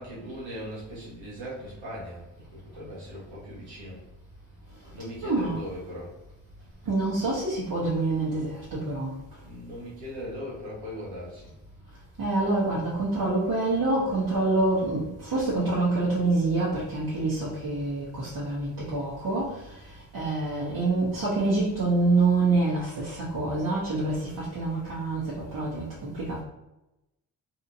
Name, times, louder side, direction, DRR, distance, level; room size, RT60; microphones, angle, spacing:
voice 1, 0.0-4.0 4.9-6.1 9.4-11.5, equal, 85° right, -7 dB, 1.4 m, -39 dB
voice 2, 5.2-5.6 6.9-9.2 12.2-26.4, right 2 dB, 50° right, -8 dB, 1.1 m, -26 dB
2.8 x 2.7 x 2.6 m, 0.92 s
supercardioid pair, 45°, 44 cm